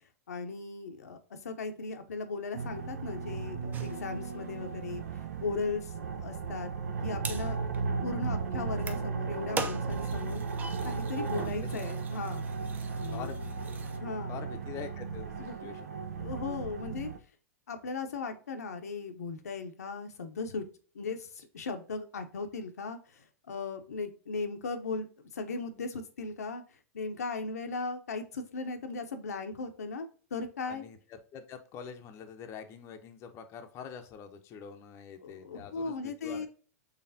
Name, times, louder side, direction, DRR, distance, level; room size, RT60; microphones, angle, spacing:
voice 1, 0.3-5.0 5.4-5.9 6.2-6.7 7.0-7.6 8.0-10.4 10.8-12.4 13.0-13.3 13.9-14.4 15.4-15.6 16.2-17.1 17.7-20.6 20.9-25.1 25.3-26.6 26.9-30.8 35.2-36.5, left 4 dB, 85° left, 6 dB, 0.7 m, -37 dB
sound 1, 2.5-17.2, right 4 dB, 80° right, 0.5 m, -36 dB
sound 2, 3.7-14.0, right 4 dB, 20° right, 0.5 m, -43 dB
voice 2, 11.1-11.8 13.1-13.7 14.3-15.9 30.6-36.5, left 7 dB, 35° left, 6 dB, 0.6 m, -45 dB
4.1 x 3.3 x 2.6 m, 0.40 s
hypercardioid pair, 110°, 8 cm